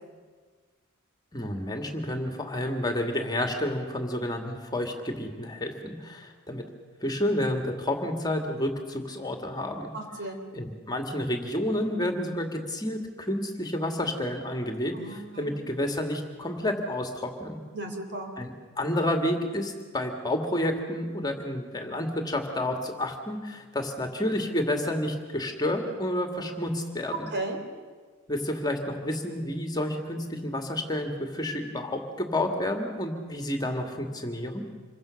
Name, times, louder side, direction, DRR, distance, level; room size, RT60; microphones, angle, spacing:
voice 1, 1.3-6.6 7.0-9.9 10.5-17.6 18.4-18.5 18.8-27.3 28.3-34.7, left 1 dB, 20° left, 4 dB, 2.3 m, -30 dB
voice 2, 9.9-10.5 14.9-15.5 17.7-18.3 27.3-27.6, right 2 dB, 55° right, 4 dB, 3.6 m, -35 dB
27.0 x 23.5 x 6.5 m, 1.5 s
head